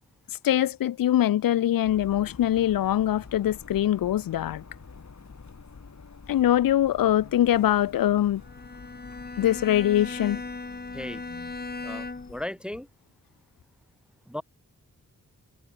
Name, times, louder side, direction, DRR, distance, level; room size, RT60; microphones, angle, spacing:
voice 1, 0.4-4.6 6.3-8.4 9.4-10.4, left 12 dB, 75° left, 0.6 m, -23 dB
sound 1, 1.8-12.5, left 4 dB, 55° left, 4.3 m, -48 dB
Bowed string instrument, 8.4-12.5, left 3 dB, 30° left, 2.0 m, -38 dB
voice 2, 11.8-12.9 14.3-14.4, left 1 dB, 5° right, 0.4 m, -36 dB
cardioid pair, 45°, 34 cm